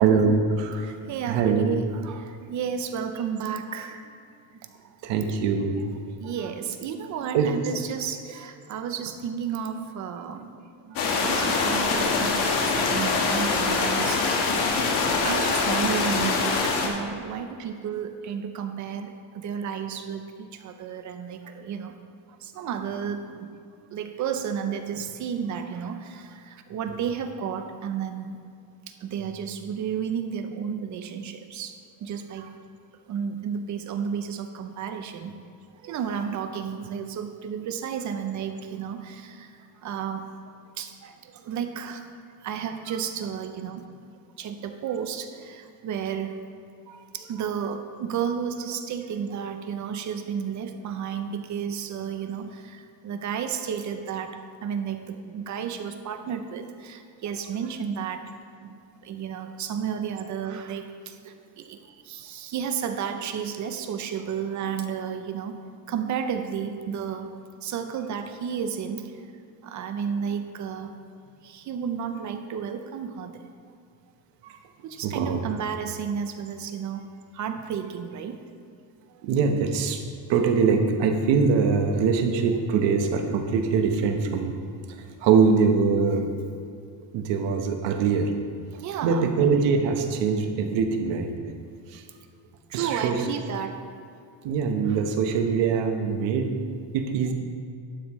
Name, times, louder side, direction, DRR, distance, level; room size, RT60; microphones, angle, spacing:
voice 1, 0.0-0.9 1.3-1.7 5.0-5.8 7.3-7.5 12.8-12.9 46.9-47.0 74.4-74.6 75.0-75.4 79.2-80.0 80.3-84.5 84.9-86.3 87.1-88.3 89.0-91.3 91.9-92.0 92.7-93.2 94.4-96.6 96.9-97.3, right 5 dB, 75° right, 5 dB, 1.1 m, -23 dB
voice 2, 0.8-4.1 4.8-4.9 6.2-10.6 10.8-14.7 15.2-22.0 22.4-23.6 23.9-28.4 28.9-32.5 33.1-35.4 35.8-40.3 40.8-42.1 42.4-43.9 44.4-46.3 47.1-58.3 58.6-67.3 67.6-69.3 69.6-71.0 71.4-73.4 74.8-77.1 77.3-78.4 79.1-79.2 88.7-89.3 92.7-93.9 94.9-95.0, right 7 dB, 40° right, 8 dB, 0.6 m, -32 dB
sound 1, 11.0-16.9, left 4 dB, 65° left, 1.6 m, -24 dB
11.5 x 9.5 x 3.1 m, 2.3 s
cardioid pair, 165°, 44 cm